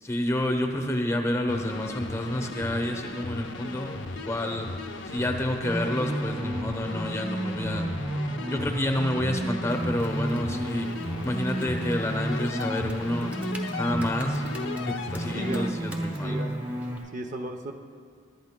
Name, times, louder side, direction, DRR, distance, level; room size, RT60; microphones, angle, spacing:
voice 1, 0.0-4.7 5.1-7.9 8.5-10.9 11.2-13.4 13.7-14.4 14.9-16.5, left 1 dB, 15° left, 4 dB, 0.8 m, -29 dB
sound 1, 1.5-15.7, left 2 dB, 75° left, 0.8 m, -37 dB
sound 2, 5.6-17.0, right 1 dB, 25° right, 2.0 m, -32 dB
Computer keyboard, 9.7-17.0, equal, 10° right, 1.0 m, -47 dB
voice 2, 15.3-15.7 16.2-16.6 17.1-17.7, right 1 dB, 40° right, 5 dB, 0.7 m, -34 dB
23.0 x 11.5 x 2.2 m, 2.1 s
head